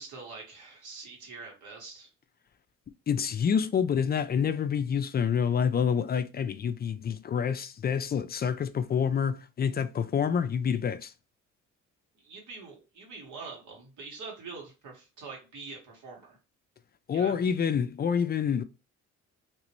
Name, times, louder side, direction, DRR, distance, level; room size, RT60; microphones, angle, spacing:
voice 1, 0.0-2.1 12.2-16.4 17.1-17.4, right 4 dB, 75° right, 1.7 m, -44 dB
voice 2, 3.1-11.1 17.1-18.6, left 7 dB, 35° left, 0.4 m, -27 dB
2.9 x 2.9 x 3.0 m
cardioid pair, 90°, 30 cm